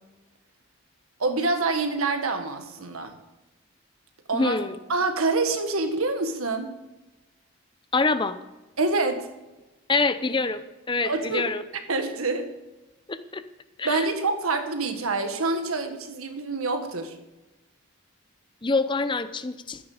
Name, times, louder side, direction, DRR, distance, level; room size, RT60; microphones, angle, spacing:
voice 1, 1.2-3.2 4.3-4.6 4.9-6.7 8.8-9.3 11.0-11.5 11.9-12.5 13.8-17.2, right 3 dB, 85° right, 7 dB, 1.5 m, -26 dB
voice 2, 4.3-4.8 7.9-8.4 9.9-10.6 10.9-11.6 13.1-13.4 13.8-14.1 18.6-19.8, left 3 dB, 20° left, 11 dB, 0.6 m, -25 dB
13.0 x 10.0 x 5.0 m, 1.1 s
head